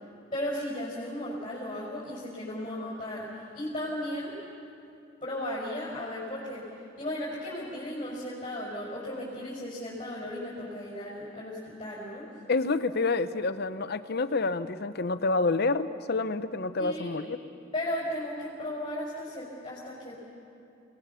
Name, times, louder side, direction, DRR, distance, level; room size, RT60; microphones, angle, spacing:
voice 1, 0.3-3.3 3.5-4.3 5.2-6.7 7.0-12.3 16.8-17.1 17.7-20.2, left 1 dB, 25° left, -5 dB, 5.4 m, -35 dB
voice 2, 12.5-17.4, left 3 dB, 50° left, 12 dB, 0.8 m, -28 dB
29.5 x 19.0 x 7.0 m, 2.7 s
head